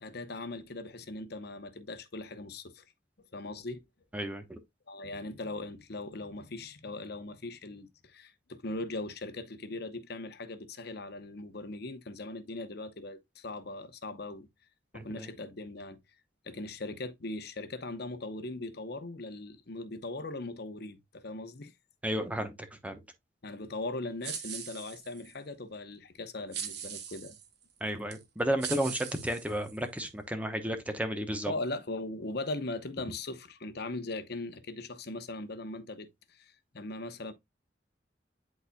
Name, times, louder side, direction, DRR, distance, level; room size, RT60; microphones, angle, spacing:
voice 1, 0.0-2.8 3.3-3.8 4.9-14.5 14.9-16.0 16.4-21.7 23.4-27.4 31.5-37.3, left 2 dB, 60° left, 0.9 m, -39 dB
voice 2, 4.1-4.6 14.9-15.3 22.0-23.0 27.8-31.5, equal, 10° right, 0.9 m, -33 dB
sound 1, 24.2-25.3 26.5-27.5 28.1-28.2 28.6-30.0, right 8 dB, 60° right, 1.1 m, -40 dB
11.0 x 4.1 x 2.2 m
head